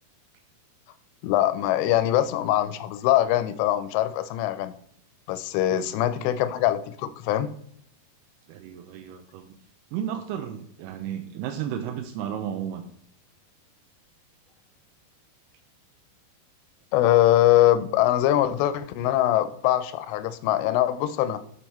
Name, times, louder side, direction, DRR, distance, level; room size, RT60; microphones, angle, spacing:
voice 1, 1.2-4.7 5.3-7.5 16.9-21.4, left 13 dB, 85° left, 13 dB, 2.7 m, -22 dB
voice 2, 8.5-9.5 9.9-12.8, right 9 dB, 85° right, 5 dB, 2.4 m, -33 dB
6.7 x 4.6 x 4.2 m, 0.69 s
omnidirectional pair, 5.1 m